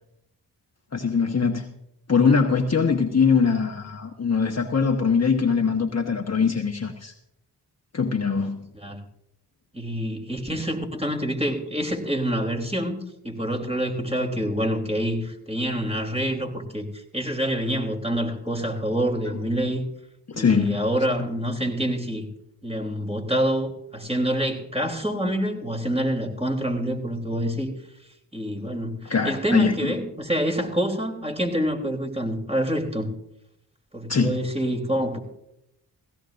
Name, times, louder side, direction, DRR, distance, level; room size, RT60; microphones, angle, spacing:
voice 1, 0.9-1.7 2.1-7.1 7.9-8.7 20.3-20.8 29.1-29.9 34.1-34.4, left 5 dB, 35° left, 3 dB, 1.2 m, -22 dB
voice 2, 9.7-19.8 20.3-22.3 22.6-27.7 28.3-33.1 33.9-35.2, equal, 15° right, 3 dB, 3.4 m, -27 dB
17.0 x 16.5 x 2.6 m, 0.80 s
cardioid pair, 45°, 43 cm